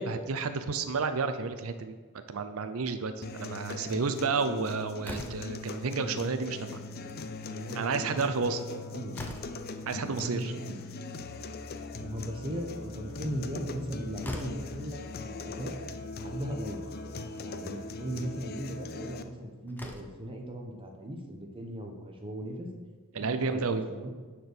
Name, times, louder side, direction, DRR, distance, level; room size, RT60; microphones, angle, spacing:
voice 1, 0.0-2.0 2.3-6.8 7.7-8.6 9.9-10.5 23.1-23.9, right 4 dB, 75° right, 9 dB, 0.6 m, -31 dB
sound 1, 3.2-19.2, left 3 dB, 45° left, 0.5 m, -40 dB
Slam, 5.0-5.6 6.9-7.2 7.6-7.7 7.9-8.0 8.6-9.7 11.5-12.2 13.8-13.9 14.2-14.7 15.8-15.9 16.3-16.4 17.2-17.5 19.2-19.3 19.7-20.3, left 1 dB, 10° left, 0.7 m, -43 dB
voice 2, 7.5-9.3 9.8-10.8 12.0-15.8 16.2-16.9 17.4-22.7 23.2-23.6 23.9-24.1, equal, 25° right, 3 dB, 1.0 m, -38 dB
9.9 x 4.5 x 6.8 m, 1.4 s
head